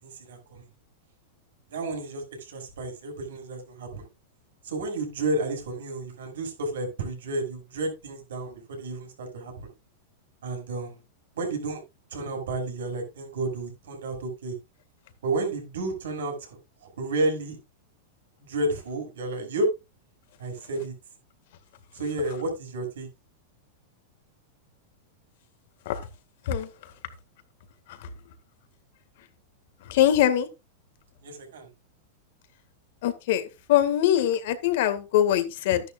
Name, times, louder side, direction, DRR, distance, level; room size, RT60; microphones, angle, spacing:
voice 1, 0.0-0.6 1.7-4.1 4.6-9.7 10.4-11.0 11.4-11.8 12.1-14.6 15.2-16.6 17.0-17.6 18.4-19.7 20.4-20.9 21.9-23.1 31.2-31.7, right 2 dB, 80° right, 3 dB, 5.9 m, -31 dB
voice 2, 29.9-30.5 33.0-33.4 33.7-35.8, left 11 dB, 65° left, 10 dB, 1.9 m, -22 dB
13.0 x 11.0 x 2.4 m, 0.25 s
hypercardioid pair, 120°, 0 cm